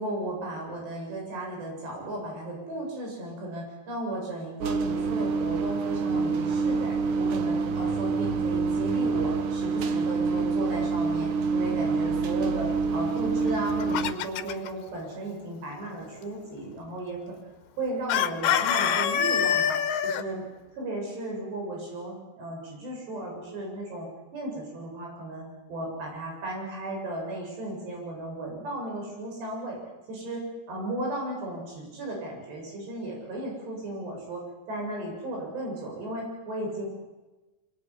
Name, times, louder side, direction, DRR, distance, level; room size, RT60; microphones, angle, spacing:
voice 1, 0.0-17.4 17.8-20.4 20.7-24.1 24.3-29.8 30.1-30.4 30.7-36.8, right 1 dB, 90° right, -1 dB, 10.0 m, -35 dB
sound 1, 4.6-14.1, right 4 dB, 60° right, 2.7 m, -27 dB
Chicken rooster, 13.5-14.7 18.1-20.2, left 9 dB, 75° left, 3.0 m, -25 dB
26.0 x 22.5 x 10.0 m, 1.1 s
omnidirectional pair, 4.7 m